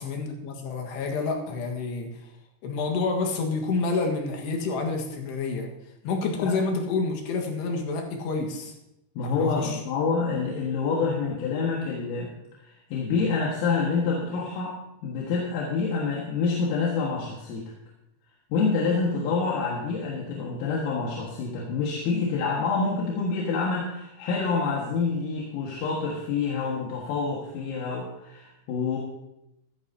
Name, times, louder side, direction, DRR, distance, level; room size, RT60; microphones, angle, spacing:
voice 1, 0.0-2.1 2.6-5.7 6.0-8.7 9.2-9.8, left 4 dB, 65° left, 3 dB, 3.4 m, -28 dB
voice 2, 9.2-12.3 12.6-17.6 18.5-29.0, left 4 dB, 90° left, -3 dB, 4.3 m, -27 dB
14.5 x 14.0 x 2.8 m, 0.87 s
omnidirectional pair, 5.7 m